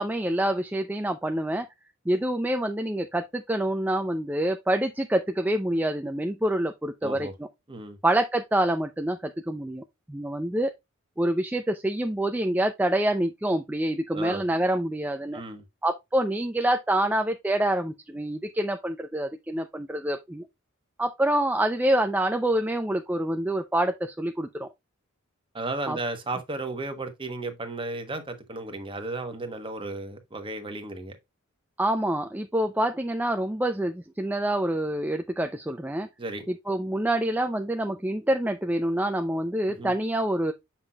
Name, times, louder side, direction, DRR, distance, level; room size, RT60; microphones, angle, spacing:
voice 1, 0.0-1.7 2.1-7.3 8.0-10.7 11.2-15.4 15.8-20.5 21.0-24.7 25.9-26.0 31.8-36.1 36.5-40.5, right 1 dB, 10° right, 0.5 m, -26 dB
voice 2, 7.0-7.3 7.7-8.0 14.1-14.5 15.3-15.6 25.5-31.2 36.2-36.4 39.7-39.9, right 2 dB, 25° right, 1.2 m, -34 dB
7.1 x 5.7 x 2.3 m
head